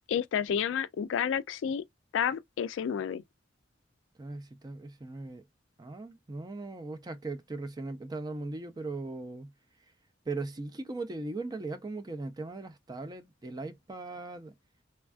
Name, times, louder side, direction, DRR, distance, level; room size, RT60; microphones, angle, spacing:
voice 1, 0.1-1.8 2.1-3.2, left 8 dB, 70° left, 0.3 m, -30 dB
voice 2, 4.2-5.4 5.8-9.5 10.3-14.5, right 3 dB, 20° right, 0.4 m, -39 dB
3.3 x 2.3 x 2.3 m
head